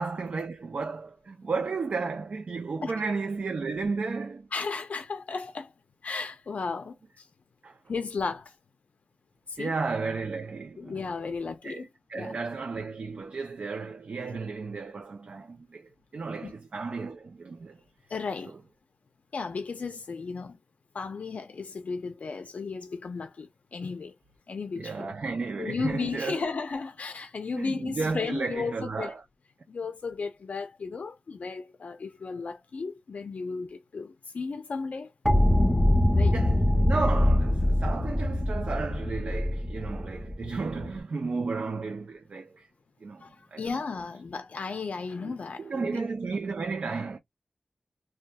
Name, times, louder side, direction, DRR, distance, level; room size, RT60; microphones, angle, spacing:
voice 1, 0.0-4.5 7.6-7.8 9.6-11.0 11.6-17.8 24.8-26.4 27.5-29.2 36.3-42.7 43.0-43.2 43.5-43.8 45.2-47.2, right 4 dB, 75° right, 0.4 m, -33 dB
voice 2, 4.5-5.7 6.0-7.3 7.9-8.5 9.5-9.7 10.8-11.9 12.1-12.4 16.4-16.5 18.1-18.6 19.3-20.6 20.9-24.1 24.5-25.1 25.6-29.1 29.7-35.1 36.1-36.4 43.2-46.0, left 4 dB, 80° left, 0.4 m, -34 dB
sound 1, 35.3-40.9, left 1 dB, 5° left, 0.6 m, -24 dB
2.7 x 2.2 x 2.2 m
cardioid pair, 40°, 2 cm